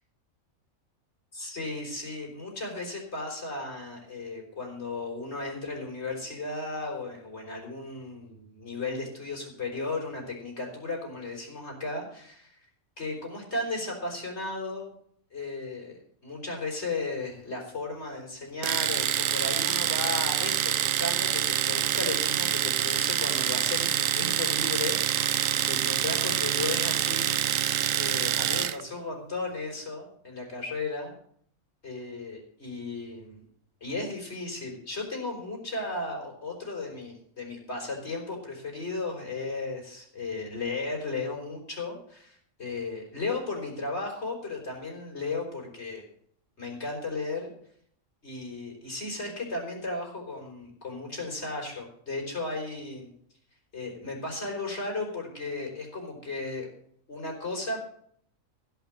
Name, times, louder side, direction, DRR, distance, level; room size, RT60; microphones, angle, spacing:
voice 1, 1.4-12.5 13.0-14.9 15.3-27.6 27.9-31.1 31.8-33.4 33.8-46.1 46.6-47.5 48.2-53.1 53.7-56.7 57.1-57.8, left 3 dB, 50° left, 0 dB, 5.0 m, -35 dB
Domestic sounds home sounds, 18.6-28.8, right 10 dB, 70° right, 1.1 m, -26 dB
16.0 x 5.9 x 9.2 m, 0.63 s
omnidirectional pair, 1.4 m